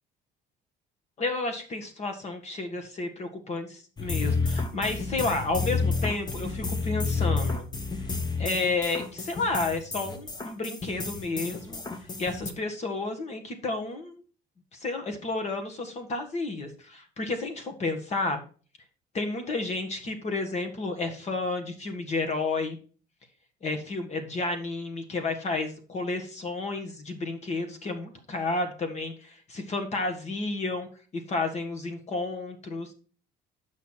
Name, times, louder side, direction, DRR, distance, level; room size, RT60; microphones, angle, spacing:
voice 1, 1.2-7.7 8.4-11.8 12.2-14.2 14.7-18.4 19.1-22.8 23.6-30.9 31.1-32.9, left 3 dB, 40° left, 6 dB, 1.7 m, -31 dB
sound 1, 4.0-12.5, left 4 dB, 25° left, 1.0 m, -30 dB
7.3 x 5.7 x 4.5 m, 0.38 s
cardioid pair, 110°, 17 cm